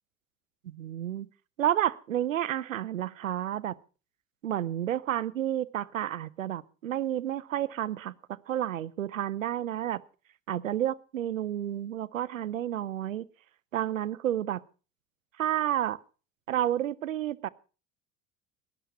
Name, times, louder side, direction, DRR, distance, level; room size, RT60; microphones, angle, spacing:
voice 1, 0.6-1.3 1.6-3.8 4.4-10.0 10.5-13.3 13.7-14.6 15.4-16.0 16.5-17.5, right 11 dB, 75° right, 19 dB, 0.7 m, -30 dB
19.0 x 11.0 x 5.7 m, 0.37 s
figure-of-eight pair, 65°, 39 cm